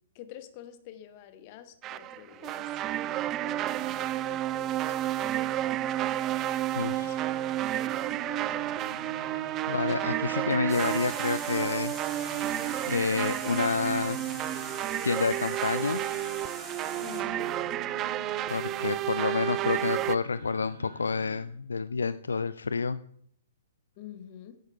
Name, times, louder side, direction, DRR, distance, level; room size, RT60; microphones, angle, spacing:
voice 1, 0.1-2.7 3.0-6.0 6.9-7.7 17.0-17.5 24.0-24.6, left 11 dB, 35° left, 9 dB, 1.4 m, -48 dB
sound 1, 1.8-20.2, right 13 dB, 25° right, 0.4 m, -31 dB
voice 2, 6.7-7.2 9.7-11.9 12.9-14.2 15.0-16.0 18.5-23.0, left 5 dB, 70° left, 15 dB, 0.4 m, -29 dB
sound 2, 7.2-21.4, right 1 dB, 70° right, 3.7 m, -48 dB
sound 3, 10.7-17.2, right 1 dB, 5° right, 2.6 m, -44 dB
11.0 x 8.4 x 5.6 m, 0.66 s
figure-of-eight pair, 115°, 0 cm